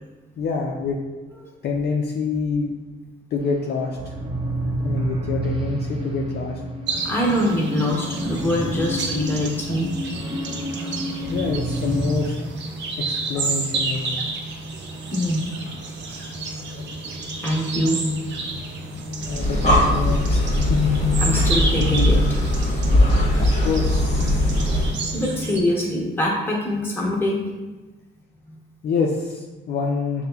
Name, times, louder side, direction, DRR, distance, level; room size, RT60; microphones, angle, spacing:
voice 1, 0.4-1.0 1.6-2.8 3.3-4.2 4.8-6.6 11.3-12.4 13.0-14.2 19.2-20.8 23.4-24.9 28.8-30.3, left 4 dB, 55° left, 0 dB, 0.5 m, -26 dB
sound 1, 3.4-12.2, right 1 dB, 25° right, 0.8 m, -29 dB
sound 2, 6.9-25.6, right 3 dB, 65° right, 0.6 m, -31 dB
voice 2, 7.0-9.9 10.8-10.9 13.4-13.5 15.1-15.7 16.1-19.5 20.5-22.4 22.7-22.8 25.1-27.4, left 1 dB, 10° left, -4 dB, 1.2 m, -25 dB
Breathing, 19.2-25.0, left 1 dB, 35° left, 1.1 m, -20 dB
5.6 x 2.1 x 3.4 m, 1.2 s
cardioid pair, 90°, 20 cm